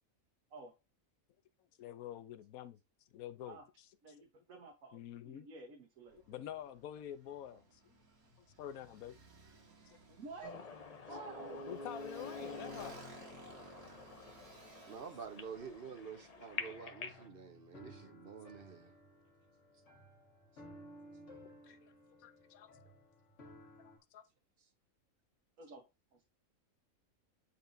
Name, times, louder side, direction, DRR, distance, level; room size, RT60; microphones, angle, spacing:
voice 1, 1.8-2.8 3.1-3.6 4.9-5.5 6.3-8.0 8.6-9.2 9.9-10.0 11.5-13.0 14.7-14.8 21.6-21.9 22.2-22.7 23.8-24.2, left 10 dB, 75° left, 1.1 m, -47 dB
voice 2, 4.0-5.0 5.2-6.4 7.5-7.6 10.1-10.6 11.1-11.7 25.6-25.8 26.1-26.2, right 3 dB, 70° right, 1.5 m, -51 dB
Motorcycle, 6.1-16.7, right 3 dB, 90° right, 2.1 m, -58 dB
sound 1, 10.4-17.3, left 4 dB, 40° left, 0.6 m, -47 dB
voice 3, 14.9-18.9, right 6 dB, 50° right, 0.8 m, -48 dB
sound 2, 16.6-24.0, equal, 55° left, 1.7 m, -57 dB
9.3 x 4.2 x 2.6 m
omnidirectional pair, 1.5 m